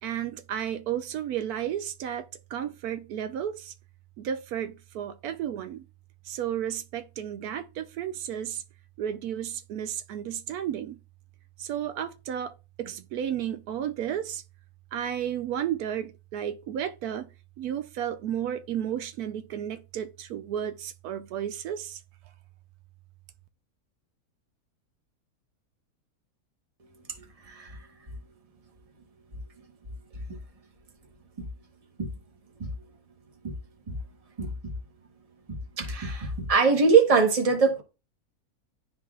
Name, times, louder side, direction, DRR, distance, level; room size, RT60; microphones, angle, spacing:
voice 1, 0.0-3.7 4.2-5.8 6.2-8.6 9.0-11.0 11.6-14.4 14.9-17.3 17.6-22.0, right 10 dB, 85° right, 1.1 m, -33 dB
voice 2, 27.5-27.8 32.0-32.1 33.4-33.5 33.9-34.0 34.4-34.5 35.8-37.8, right 5 dB, 25° right, 1.1 m, -22 dB
10.5 x 3.9 x 2.3 m
omnidirectional pair, 1.6 m